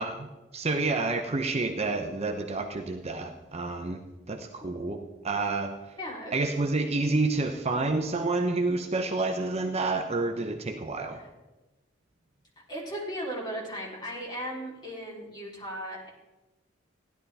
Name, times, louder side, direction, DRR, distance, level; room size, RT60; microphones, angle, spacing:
voice 1, 0.0-4.0 4.3-5.8 6.3-11.2, right 3 dB, 35° right, 5 dB, 0.7 m, -29 dB
voice 2, 6.0-6.3 11.1-11.3 12.7-16.1, equal, 20° left, -4 dB, 3.4 m, -36 dB
16.0 x 11.0 x 3.4 m, 1.1 s
head